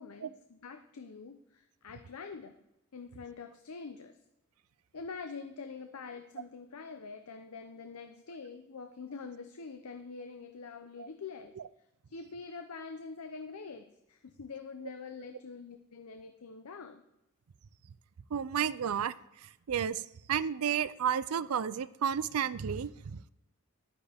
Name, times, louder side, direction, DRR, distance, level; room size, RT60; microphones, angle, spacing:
voice 1, 0.0-2.6 2.9-4.2 4.9-11.6 12.1-17.0, left 4 dB, 85° left, 7 dB, 0.7 m, -45 dB
voice 2, 18.3-19.1 19.7-20.0 20.3-23.3, right 8 dB, 80° right, 17 dB, 0.4 m, -31 dB
11.0 x 9.8 x 3.5 m, 0.90 s
head